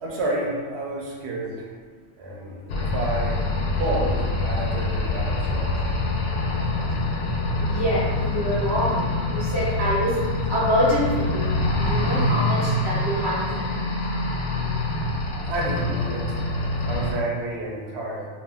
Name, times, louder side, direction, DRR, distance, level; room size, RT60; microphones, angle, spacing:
voice 1, 0.0-1.7 2.2-3.4 3.7-5.8 15.5-16.4 16.8-18.3, right 2 dB, 70° right, -3 dB, 0.8 m, -30 dB
sound 1, 2.7-17.1, left 2 dB, 85° left, 0.9 m, -25 dB
voice 2, 7.6-10.2 10.5-14.2 16.8-17.0, left 1 dB, 30° left, -9 dB, 0.4 m, -26 dB
2.4 x 2.2 x 3.3 m, 1.5 s
omnidirectional pair, 1.2 m